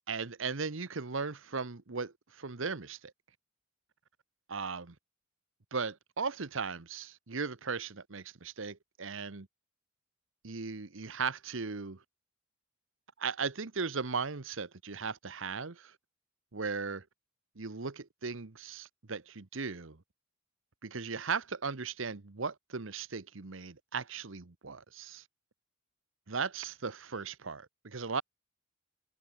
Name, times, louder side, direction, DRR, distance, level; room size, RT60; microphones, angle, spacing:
voice 1, 0.1-3.0 4.5-4.9 5.7-9.5 10.4-12.0 13.2-15.9 16.5-17.0 17.6-20.0 20.8-25.2 26.3-28.2, right 5 dB, 70° right, 1.1 m, -37 dB
head